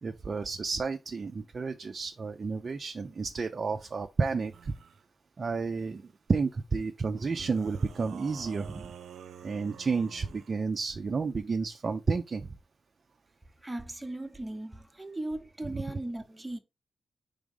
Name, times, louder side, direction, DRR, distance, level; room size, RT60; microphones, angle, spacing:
voice 1, 0.0-4.7 5.4-8.9 9.4-12.5, right 4 dB, 35° right, 0.5 m, -31 dB
sound 1, 4.5-5.0 7.1-10.6, right 8 dB, 90° right, 0.6 m, -48 dB
voice 2, 13.6-16.6, right 1 dB, 10° right, 0.8 m, -38 dB
4.9 x 3.5 x 5.3 m
wide cardioid pair, 155°, 0 cm